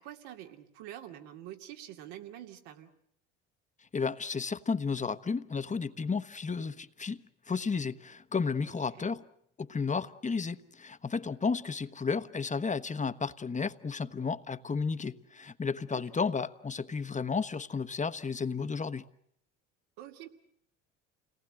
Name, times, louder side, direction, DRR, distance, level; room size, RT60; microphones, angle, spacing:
voice 1, 0.0-2.9 8.9-9.1 15.9-16.2 20.0-20.3, right 12 dB, 70° right, 2.7 m, -46 dB
voice 2, 3.9-7.2 7.5-9.2 9.6-19.0, left 5 dB, 20° left, 1.2 m, -33 dB
29.5 x 19.0 x 7.8 m
hypercardioid pair, 70°, 36 cm